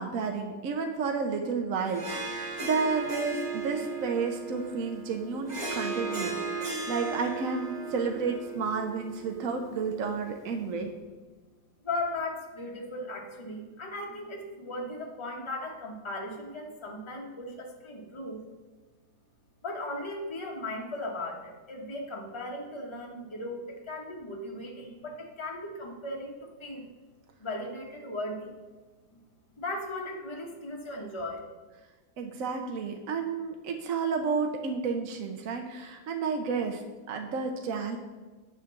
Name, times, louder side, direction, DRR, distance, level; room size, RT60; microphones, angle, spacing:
voice 1, 0.0-10.9 32.2-36.8 37.1-38.0, right 5 dB, 60° right, 4 dB, 1.0 m, -31 dB
Harp, 1.8-10.5, right 4 dB, 25° right, 1.6 m, -36 dB
voice 2, 11.8-18.4 19.6-26.9 27.4-28.5 29.5-31.4, left 2 dB, 20° left, 0 dB, 1.0 m, -37 dB
8.9 x 3.8 x 6.9 m, 1.3 s
omnidirectional pair, 1.8 m